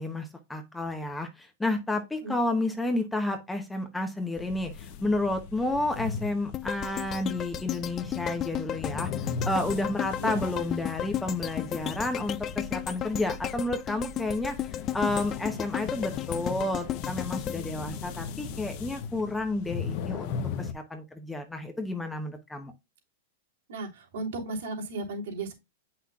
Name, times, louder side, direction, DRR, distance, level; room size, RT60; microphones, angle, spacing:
voice 1, 0.0-9.1 9.4-14.7 14.9-22.7, left 2 dB, 5° left, 0.8 m, -31 dB
sound 1, 4.4-20.7, left 6 dB, 45° left, 0.8 m, -38 dB
sound 2, 6.5-18.7 19.1-19.2, left 11 dB, 25° left, 0.3 m, -34 dB
voice 2, 23.7-25.5, right 2 dB, 75° right, 3.3 m, -35 dB
8.0 x 5.8 x 2.4 m
supercardioid pair, 160°, 0 cm